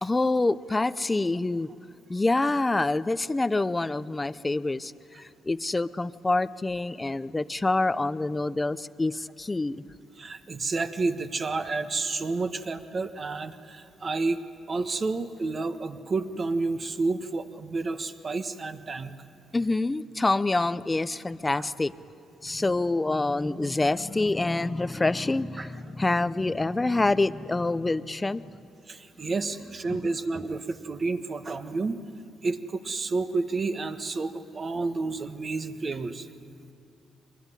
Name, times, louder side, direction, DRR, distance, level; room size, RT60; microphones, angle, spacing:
voice 1, 0.0-1.7 2.1-4.9 5.2-9.8 19.5-21.9 22.4-28.5 29.9-30.1, left 2 dB, 20° left, 15 dB, 0.6 m, -26 dB
voice 2, 10.2-14.4 14.7-19.1 21.6-21.7 25.6-25.7 28.9-32.0 32.4-36.3, right 3 dB, 40° right, 8 dB, 1.4 m, -30 dB
24.0 x 21.0 x 9.9 m, 2.5 s
cardioid pair, 90°, 0 cm